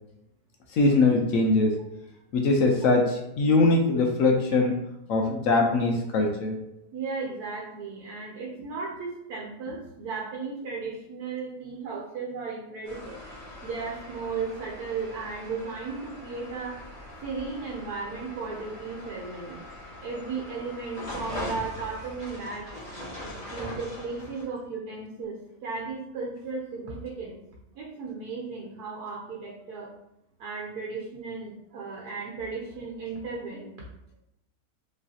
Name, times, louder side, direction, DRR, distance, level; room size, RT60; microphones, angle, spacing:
voice 1, 0.7-1.8 2.3-4.8 5.1-6.6, left 3 dB, 65° left, 2 dB, 0.9 m, -22 dB
voice 2, 6.9-13.2 13.6-16.8 17.2-19.6 20.0-22.7 23.5-27.4 27.7-29.9 30.4-33.8, right 4 dB, 75° right, -2 dB, 1.3 m, -35 dB
sound 1, 12.8-24.4, left 1 dB, 25° left, 1.5 m, -41 dB
5.2 x 3.2 x 2.8 m, 0.85 s
omnidirectional pair, 1.7 m